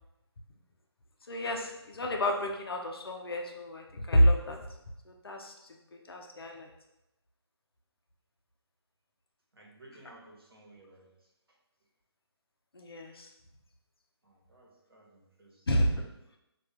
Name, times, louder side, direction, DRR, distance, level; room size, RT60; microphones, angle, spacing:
voice 1, 1.2-4.6 5.0-6.7 12.7-13.3 15.7-16.0, equal, 60° left, 2 dB, 0.6 m, -29 dB
voice 2, 9.5-11.6 14.2-15.7, right 2 dB, 60° right, -2 dB, 1.1 m, -57 dB
3.5 x 2.5 x 3.4 m, 0.90 s
figure-of-eight pair, 150°, 14 cm